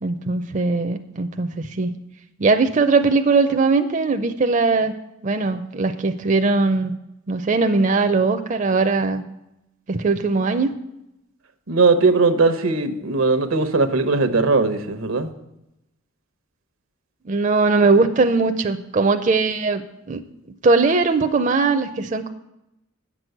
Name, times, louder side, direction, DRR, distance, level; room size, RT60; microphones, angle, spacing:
voice 1, 0.0-1.9 2.4-4.9 5.2-6.9 7.3-9.2 9.9-10.7 17.3-19.8 20.1-20.2 20.6-22.3, right 3 dB, 40° right, 7 dB, 0.5 m, -20 dB
voice 2, 11.7-15.3, right 3 dB, 85° right, 9 dB, 0.9 m, -19 dB
8.6 x 6.1 x 7.8 m, 0.89 s
head